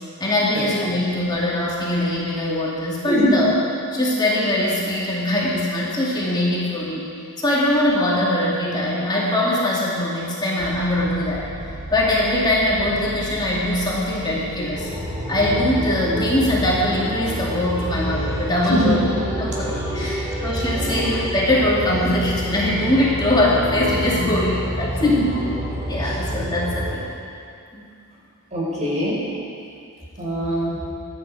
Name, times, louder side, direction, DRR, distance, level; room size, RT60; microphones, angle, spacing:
voice 1, 0.2-3.6 3.9-7.1 7.4-11.5 11.9-14.9 15.3-19.0 19.4-25.1 25.9-27.1 27.7-27.8, left 1 dB, 20° left, -6 dB, 2.4 m, -22 dB
sound 1, 10.6-27.0, right 1 dB, 15° right, 2.4 m, -29 dB
voice 2, 18.6-18.9 19.9-20.2 20.7-21.0 25.0-25.2 26.0-26.2 28.5-29.2 30.2-30.8, left 1 dB, 30° right, -6 dB, 4.6 m, -22 dB
24.0 x 9.7 x 4.8 m, 2.5 s
head